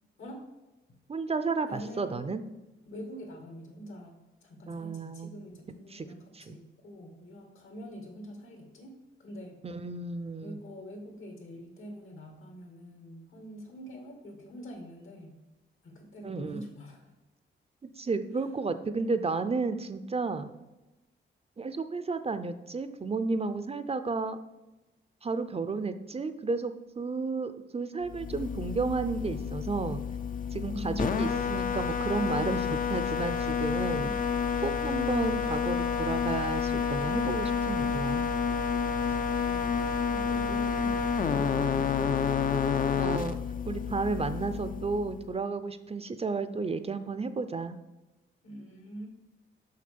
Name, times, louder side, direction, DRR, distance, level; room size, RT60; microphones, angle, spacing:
voice 1, 1.1-2.4 4.7-5.3 5.9-6.1 6.3-6.6 9.6-10.6 16.2-16.6 18.0-20.5 21.6-24.4 25.2-30.0 30.5-34.1 34.6-38.2 42.9-43.4 43.7-47.8, right 4 dB, 30° right, 11 dB, 0.5 m, -32 dB
voice 2, 1.7-2.2 2.9-8.9 9.2-9.6 10.4-15.4 15.8-17.1 18.9-19.2 30.6-31.4 40.1-42.4 48.4-49.1, equal, 75° left, 3 dB, 2.3 m, -45 dB
sound 1, 28.1-45.3, left 6 dB, 40° left, 0.5 m, -29 dB
6.6 x 5.9 x 6.9 m, 1.0 s
wide cardioid pair, 115°, 21 cm